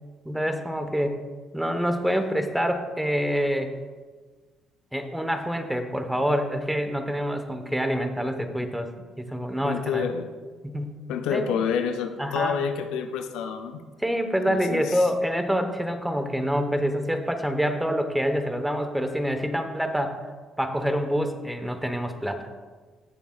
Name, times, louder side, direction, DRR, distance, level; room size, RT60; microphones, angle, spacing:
voice 1, 0.2-1.2 1.5-3.7 4.9-8.9 9.2-10.0 10.6-11.0 11.3-11.5 12.2-12.6 14.0-20.2 20.6-22.5, equal, 5° right, 6 dB, 1.1 m, -26 dB
voice 2, 9.6-10.4 11.1-13.8 14.5-15.0, left 7 dB, 85° left, 6 dB, 0.6 m, -28 dB
16.0 x 7.0 x 2.4 m, 1.4 s
supercardioid pair, 70°, 0 cm